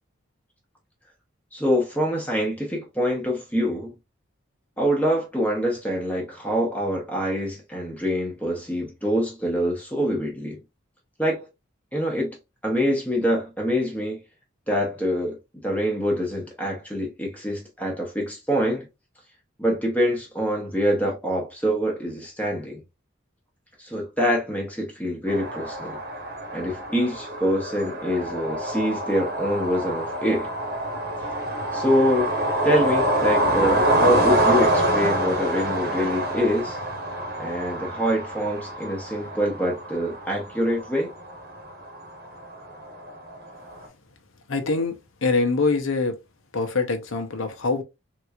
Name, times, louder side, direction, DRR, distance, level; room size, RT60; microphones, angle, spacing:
voice 1, 1.5-3.9 4.8-10.6 11.2-11.5 11.9-12.4 12.6-14.2 14.7-15.4 15.6-18.9 19.6-22.8 23.8-26.0 26.5-30.5 31.7-32.3 32.6-36.8 37.4-41.1, equal, 5° left, 0.8 m, -25 dB
sound 1, 25.3-43.9, right 1 dB, 50° right, 1.0 m, -26 dB
voice 2, 44.5-44.9 45.2-46.1 46.5-47.8, left 3 dB, 75° left, 0.7 m, -24 dB
3.7 x 3.0 x 2.3 m
head